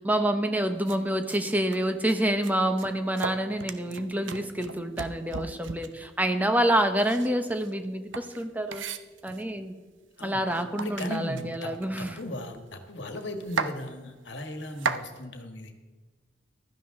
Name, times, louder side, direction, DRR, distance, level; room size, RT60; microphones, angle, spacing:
voice 1, 0.0-8.8 9.2-9.7 10.2-12.2, right 1 dB, 10° right, 7 dB, 0.9 m, -27 dB
sound 1, 0.9-1.0 1.3-1.4 1.7-2.2 2.4-6.1 6.9-9.5 10.2-10.3 10.5-12.6 12.9-13.0 13.2-13.7 14.4-15.1, right 5 dB, 85° right, 0.8 m, -35 dB
voice 2, 10.2-11.7 12.0-15.7, left 1 dB, 70° left, 6 dB, 1.6 m, -37 dB
15.5 x 13.0 x 3.7 m, 1.3 s
head